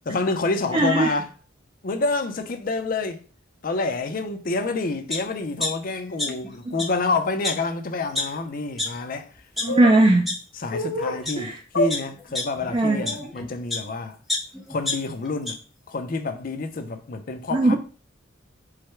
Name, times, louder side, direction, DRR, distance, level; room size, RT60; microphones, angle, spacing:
voice 1, 0.1-1.3 1.8-3.2 3.6-9.3 10.5-14.2 14.7-15.6 15.9-17.8, left 3 dB, 45° left, 0.5 m, -28 dB
voice 2, 0.7-1.1 9.6-10.3 11.4-11.6 12.7-13.0 17.5-17.8, right 2 dB, 25° right, 0.4 m, -18 dB
sound 1, 5.1-5.2 5.6-6.5 6.8-6.9 7.4-7.5 8.1-8.2 8.8-8.9 9.4-9.6 10.3-10.4 11.0-11.3 11.9-13.9 14.3-15.5 15.9-16.0, left 2 dB, ahead, 0.7 m, -28 dB
sound 2, 9.7-10.0 10.7-11.2 11.7-11.9 12.8-13.3, left 1 dB, 85° left, 1.2 m, -27 dB
4.8 x 2.2 x 4.4 m
head